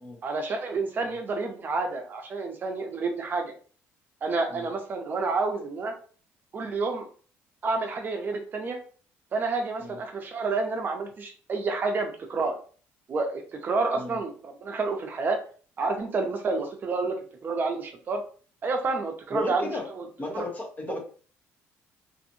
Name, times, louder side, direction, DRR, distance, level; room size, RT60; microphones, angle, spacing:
voice 1, 0.2-3.5 4.2-5.9 6.5-7.1 7.6-8.8 9.3-12.5 13.1-15.4 15.8-18.2 18.6-20.0 20.3-20.5, right 3 dB, 40° right, 4 dB, 0.5 m, -29 dB
voice 2, 19.3-19.9 20.2-21.0, left 2 dB, 30° left, 2 dB, 0.8 m, -34 dB
2.6 x 2.5 x 2.7 m, 0.41 s
cardioid pair, 105°, 5 cm